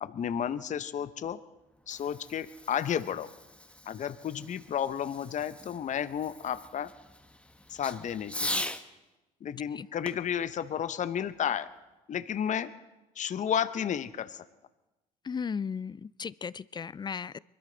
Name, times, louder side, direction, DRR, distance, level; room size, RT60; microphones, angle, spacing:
voice 1, 0.0-1.4 1.9-3.3 3.9-6.9 7.7-8.7 9.4-11.7 12.1-12.7 13.2-14.4, left 9 dB, 45° left, 13 dB, 0.8 m, -32 dB
Fireworks, 1.6-8.9 10.0-11.7, left 1 dB, 5° left, 1.2 m, -41 dB
voice 2, 15.3-17.4, left 6 dB, 25° left, 21 dB, 0.4 m, -35 dB
24.0 x 13.0 x 3.9 m, 1.0 s
hypercardioid pair, 60°, 18 cm